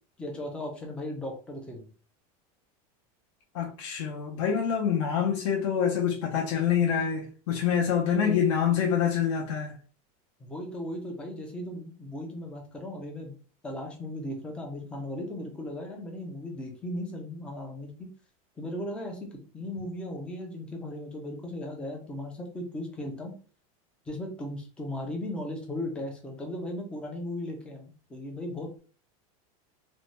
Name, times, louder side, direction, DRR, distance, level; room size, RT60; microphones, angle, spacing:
voice 1, 0.2-1.9 8.0-8.4 10.4-13.4 13.6-18.1 18.6-19.3 19.5-23.3 24.1-28.8, left 1 dB, 5° left, 0.4 m, -37 dB
voice 2, 3.5-9.8, left 8 dB, 55° left, 0.6 m, -26 dB
2.6 x 2.1 x 3.0 m
supercardioid pair, 180°, 19 cm